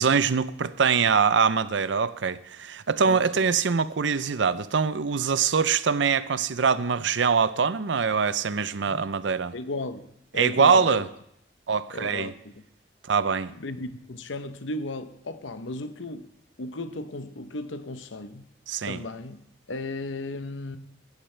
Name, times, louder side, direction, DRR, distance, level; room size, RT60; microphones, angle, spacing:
voice 1, 0.0-9.5 10.4-11.1 11.7-12.3 13.1-13.5 18.7-19.0, right 6 dB, 75° right, 0.6 m, -23 dB
voice 2, 9.5-10.1 10.3-11.1 11.9-12.6 13.6-16.3 16.6-18.5 18.8-20.8, left 2 dB, 90° left, 0.9 m, -35 dB
17.5 x 13.0 x 3.3 m
head